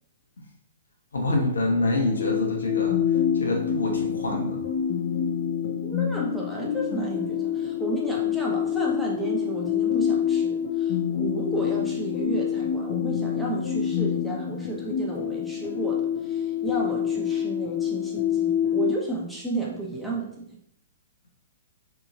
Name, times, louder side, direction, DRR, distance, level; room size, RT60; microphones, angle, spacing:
voice 1, 1.1-3.0 3.4-4.6, left 2 dB, 70° left, -1 dB, 0.8 m, -26 dB
sound 1, 2.0-19.0, left 9 dB, 40° left, 0.4 m, -27 dB
voice 2, 5.7-20.5, right 2 dB, ahead, -4 dB, 0.7 m, -33 dB
3.6 x 2.9 x 2.5 m, 0.70 s
figure-of-eight pair, 115°, 0 cm